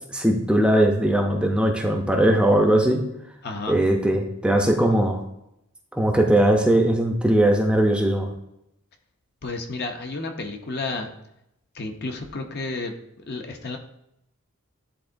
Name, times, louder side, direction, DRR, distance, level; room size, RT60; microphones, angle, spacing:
voice 1, 0.1-3.0 3.7-5.2 5.9-8.3, right 1 dB, 5° right, 2 dB, 0.6 m, -20 dB
voice 2, 3.4-3.8 9.4-11.1 11.7-12.9 13.3-13.8, left 3 dB, 50° left, 4 dB, 0.7 m, -31 dB
10.0 x 3.7 x 2.6 m, 0.82 s
head